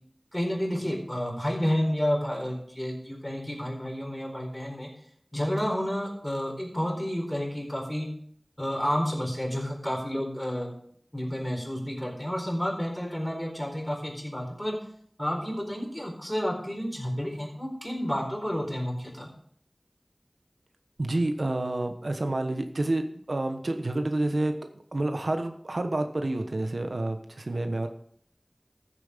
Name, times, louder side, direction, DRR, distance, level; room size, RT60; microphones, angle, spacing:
voice 1, 0.3-4.9 5.3-8.1 8.6-10.7 11.1-14.8 15.2-19.3, equal, 15° left, 0 dB, 4.4 m, -30 dB
voice 2, 21.0-24.5 24.9-27.9, right 2 dB, 85° right, 7 dB, 1.1 m, -29 dB
14.0 x 7.5 x 5.1 m, 0.63 s
wide cardioid pair, 45°, 0 cm